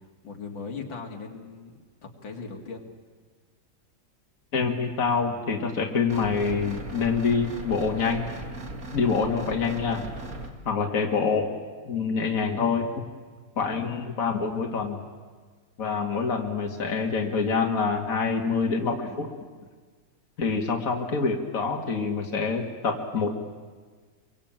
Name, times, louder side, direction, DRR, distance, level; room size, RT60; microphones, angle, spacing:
voice 1, 0.0-1.8 2.2-2.9, left 4 dB, 75° left, 2 dB, 3.1 m, -38 dB
voice 2, 4.5-8.3 8.9-10.1 10.7-11.5 11.9-12.9 13.6-15.0 15.8-19.3 20.4-23.3, left 5 dB, 45° left, 2 dB, 2.5 m, -26 dB
sound 1, 6.1-10.5, right 2 dB, 45° right, 2.7 m, -38 dB
26.5 x 23.5 x 9.0 m, 1.5 s
omnidirectional pair, 2.1 m